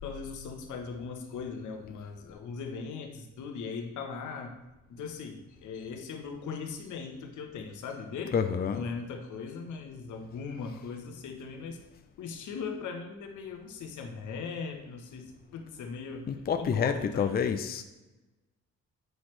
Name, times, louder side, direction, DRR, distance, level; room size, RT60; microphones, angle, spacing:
voice 1, 0.0-4.5 4.9-8.3 8.7-11.8 12.2-16.3 16.6-17.5, left 5 dB, 80° left, 4 dB, 1.2 m, -39 dB
voice 2, 8.3-8.8 16.3-17.8, left 7 dB, 30° left, 8 dB, 0.5 m, -28 dB
8.0 x 6.0 x 3.3 m, 1.1 s
cardioid pair, 90°, 30 cm